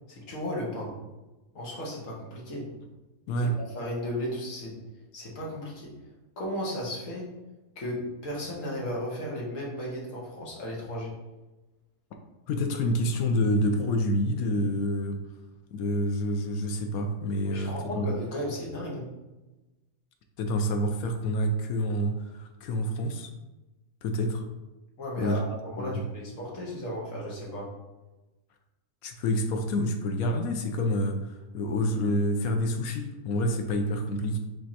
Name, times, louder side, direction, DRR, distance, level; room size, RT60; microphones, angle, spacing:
voice 1, 0.1-0.9 1.5-2.7 3.7-4.8 5.1-5.9 6.4-7.3 7.7-11.2 17.4-19.1 25.0-27.7, left 1 dB, 55° left, -3 dB, 1.5 m, -35 dB
voice 2, 12.5-15.2 15.7-18.1 20.4-23.3 24.0-24.4 25.2-25.4 25.8-26.0 29.0-34.4, equal, 70° left, 5 dB, 1.0 m, -28 dB
5.0 x 3.5 x 2.8 m, 1.1 s
omnidirectional pair, 1.7 m